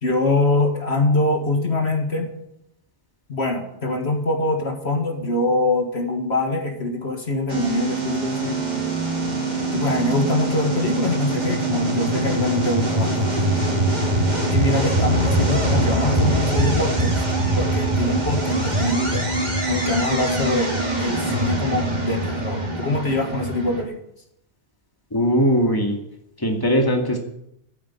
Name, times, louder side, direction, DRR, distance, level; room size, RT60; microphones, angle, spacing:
voice 1, 0.0-2.3 3.3-8.6 9.7-13.3 14.5-17.2 17.6-19.3 19.7-24.0, left 2 dB, 65° left, 3 dB, 2.1 m, -23 dB
sound 1, 7.5-23.8, right 2 dB, 40° right, 2.7 m, -23 dB
voice 2, 25.1-26.0 26.4-27.2, equal, 20° left, 2 dB, 2.3 m, -19 dB
14.5 x 9.5 x 8.3 m, 0.79 s
omnidirectional pair, 1.2 m